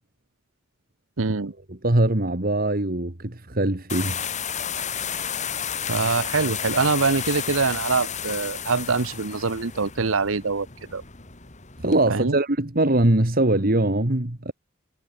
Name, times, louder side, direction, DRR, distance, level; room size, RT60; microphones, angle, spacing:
voice 1, 1.2-1.5 5.9-10.7 10.9-11.0 12.1-12.4, right 4 dB, 90° right, 1.1 m, -24 dB
voice 2, 1.8-4.2 11.8-14.5, right 1 dB, 45° right, 2.0 m, -22 dB
sound 1, 3.9-12.0, left 8 dB, 35° left, 2.3 m, -32 dB
head